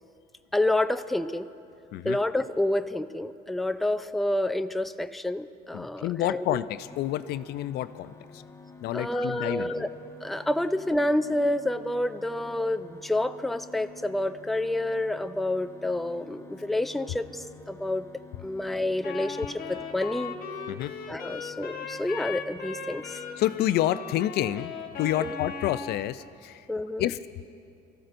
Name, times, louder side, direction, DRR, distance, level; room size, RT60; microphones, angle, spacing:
voice 1, 0.5-1.5 2.0-6.6 8.9-9.9 10.2-18.1 18.4-20.3 21.1-23.2 25.2-25.4 26.7-27.1, left 1 dB, ahead, 10 dB, 0.4 m, -28 dB
voice 2, 5.7-8.4 8.8-9.9 20.7-20.9 23.4-24.7 25.0-26.6 27.0-27.2, left 13 dB, 75° left, 14 dB, 0.4 m, -29 dB
sound 1, 6.9-23.7, left 3 dB, 15° left, 0.8 m, -49 dB
Wind instrument woodwind instrument, 19.0-26.0, left 5 dB, 60° left, 1.3 m, -38 dB
25.5 x 14.5 x 2.6 m, 2.5 s
cardioid pair, 110°, 17 cm